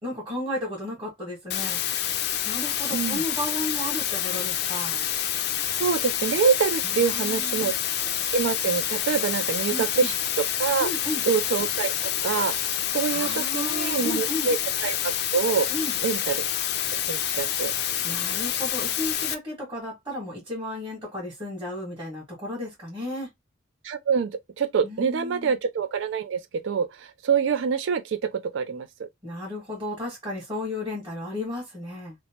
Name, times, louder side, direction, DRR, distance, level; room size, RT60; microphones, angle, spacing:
voice 1, 0.0-1.8 2.4-5.0 6.8-7.7 9.7-10.1 10.8-11.2 13.1-14.5 15.7-15.9 18.0-23.3 24.8-25.5 29.2-32.1, left 1 dB, 20° right, 1.4 m, -33 dB
sound 1, 1.5-19.3, left 10 dB, 55° left, 0.4 m, -28 dB
voice 2, 2.9-3.2 5.8-7.7 8.3-10.1 10.6-10.9 11.3-11.9 12.2-14.6 14.8-15.7 16.0-16.5 17.1-17.7 23.8-29.1, right 6 dB, 65° right, 0.4 m, -26 dB
3.1 x 2.1 x 2.7 m
head